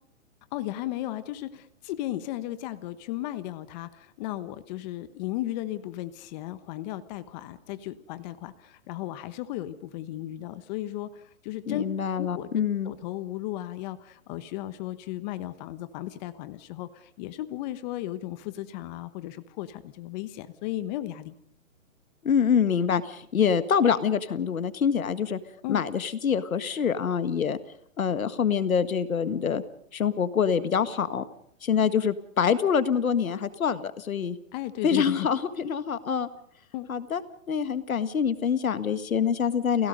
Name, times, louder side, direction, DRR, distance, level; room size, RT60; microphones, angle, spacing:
voice 1, 0.5-11.8 12.1-21.3 25.6-25.8 34.5-35.3 36.7-36.9, left 14 dB, 30° left, 12 dB, 1.2 m, -35 dB
voice 2, 11.7-12.9 22.2-25.4 25.7-27.6 28.0-29.6 29.9-31.2 31.6-34.4 34.8-36.3 36.9-37.2 37.5-39.9, left 7 dB, 85° left, 12 dB, 1.8 m, -25 dB
30.0 x 17.0 x 5.3 m, 0.65 s
hypercardioid pair, 140°, 41 cm